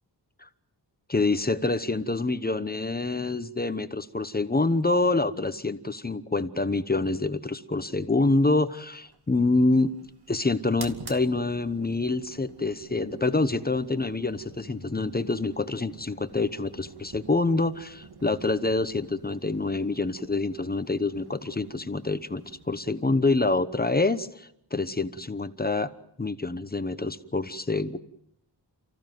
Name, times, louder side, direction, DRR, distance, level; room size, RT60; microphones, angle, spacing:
voice 1, 1.1-9.9 10.3-25.9 26.2-28.0, left 3 dB, 20° left, 12 dB, 0.9 m, -26 dB
sound 1, 8.9-24.2, right 4 dB, 55° right, 2.5 m, -49 dB
30.0 x 15.5 x 9.3 m, 0.78 s
wide cardioid pair, 145°, 44 cm